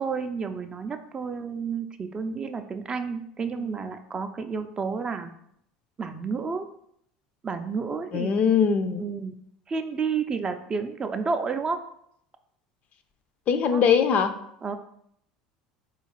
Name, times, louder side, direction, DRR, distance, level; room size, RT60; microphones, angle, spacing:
voice 1, 0.0-5.3 6.0-6.7 7.4-8.4 9.0-9.3 9.7-11.8 13.7-13.8 14.6-14.8, right 5 dB, 25° right, 8 dB, 0.3 m, -30 dB
voice 2, 8.1-9.0 13.5-14.3, left 6 dB, 45° left, 9 dB, 0.3 m, -21 dB
3.8 x 2.4 x 3.0 m, 0.71 s
hypercardioid pair, 80°, 3 cm